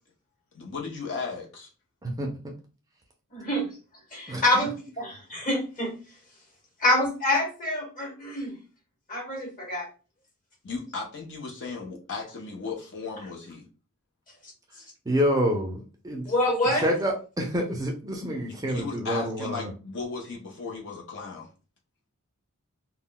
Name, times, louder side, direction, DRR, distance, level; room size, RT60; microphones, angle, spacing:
voice 1, 0.5-1.7 10.6-13.6 18.4-21.5, left 4 dB, 55° left, 0 dB, 0.6 m, -36 dB
voice 2, 3.3-3.7 4.1-5.9 6.8-8.5 9.1-9.9 16.3-16.9, left 1 dB, 40° left, -1 dB, 1.2 m, -26 dB
voice 3, 15.1-16.3 16.7-19.7, equal, 15° right, 1 dB, 0.4 m, -27 dB
2.2 x 2.2 x 3.7 m, 0.34 s
head